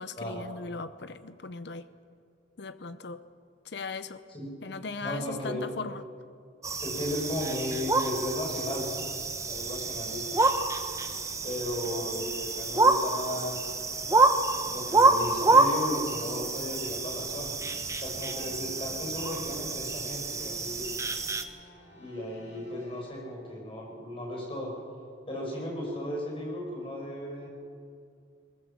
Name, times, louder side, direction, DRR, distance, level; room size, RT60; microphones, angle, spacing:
voice 1, 0.0-1.8 2.6-3.2 3.7-4.2 4.6-6.0, left 4 dB, 60° left, 12 dB, 0.7 m, -38 dB
voice 2, 5.0-5.6 6.8-9.0 9.5-10.4 11.4-13.7 14.6-17.6 18.0-21.0 21.9-24.7 25.3-27.5, left 1 dB, 30° left, -1 dB, 6.5 m, -35 dB
sound 1, 6.6-21.4, right 3 dB, 15° right, 1.0 m, -27 dB
sound 2, 9.6-23.0, equal, 90° left, 7.9 m, -52 dB
21.0 x 20.5 x 7.4 m, 2.3 s
head